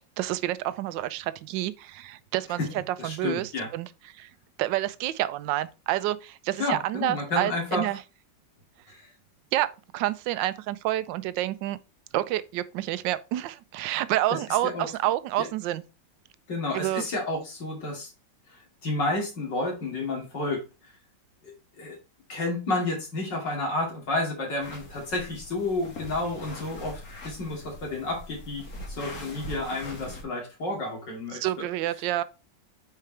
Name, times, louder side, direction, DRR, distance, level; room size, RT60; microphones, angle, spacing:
voice 1, 0.2-2.6 2.9-3.9 4.2-4.3 4.6-8.0 9.5-9.7 9.9-11.8 12.1-15.8 16.7-17.0 31.3-32.2, right 14 dB, 80° right, 1.3 m, -28 dB
voice 2, 3.0-3.7 6.6-7.8 8.9-9.1 14.3-14.9 15.4-15.5 16.5-18.1 18.5-20.6 21.4-22.0 22.3-31.6, left 2 dB, 70° left, 3.2 m, -31 dB
sound 1, 24.6-30.2, left 1 dB, 50° left, 2.1 m, -42 dB
9.1 x 4.7 x 3.3 m
omnidirectional pair, 2.0 m